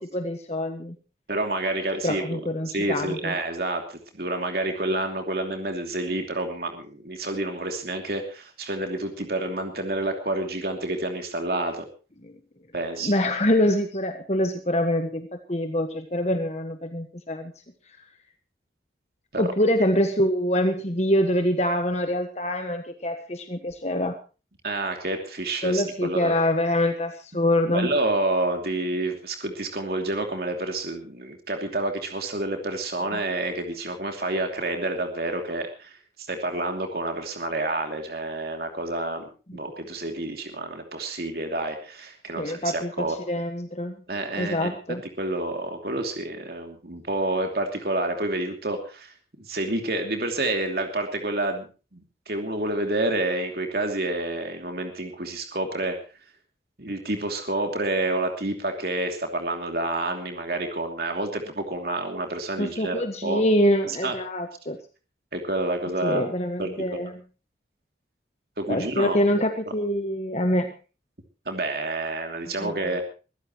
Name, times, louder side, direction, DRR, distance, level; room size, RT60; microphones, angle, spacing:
voice 1, 0.1-0.9 2.0-3.3 12.2-12.3 13.0-17.5 19.4-24.1 25.6-27.9 33.1-33.2 39.5-39.6 42.4-43.9 44.4-45.0 62.6-64.8 66.0-67.1 68.7-70.7 72.6-73.0, left 1 dB, 35° left, 5 dB, 1.5 m, -25 dB
voice 2, 1.3-2.4 2.7-11.9 12.7-13.1 19.3-19.4 24.6-26.3 27.7-39.2 39.5-43.2 44.1-44.8 45.2-51.7 51.9-56.0 56.8-63.4 63.8-64.1 65.3-66.3 66.6-67.1 68.6-69.2 71.5-73.0, right 2 dB, 55° right, 4 dB, 2.8 m, -29 dB
22.5 x 15.5 x 3.1 m, 0.34 s
head